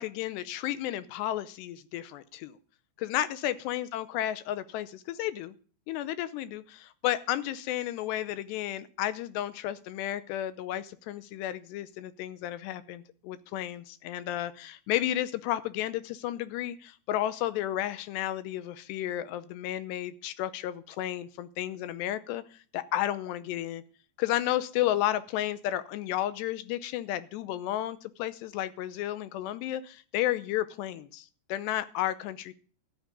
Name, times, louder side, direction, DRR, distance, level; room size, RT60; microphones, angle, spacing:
voice 1, 0.0-2.6 3.0-5.5 5.9-22.4 22.7-23.8 24.2-32.5, left 13 dB, 80° left, 14 dB, 2.8 m, -32 dB
13.5 x 6.3 x 9.5 m, 0.41 s
omnidirectional pair, 5.0 m